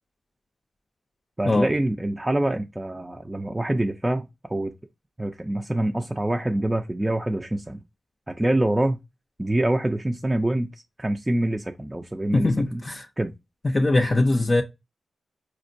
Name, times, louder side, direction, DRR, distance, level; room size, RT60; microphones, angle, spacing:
voice 1, 1.4-4.7 5.2-7.8 8.3-9.0 9.4-10.7 11.0-12.8 13.2-13.3, right 1 dB, 20° right, 0.4 m, -25 dB
voice 2, 12.3-13.1 13.6-14.6, left 2 dB, 40° left, 0.5 m, -21 dB
4.3 x 2.1 x 2.5 m
supercardioid pair, 40°, 0 cm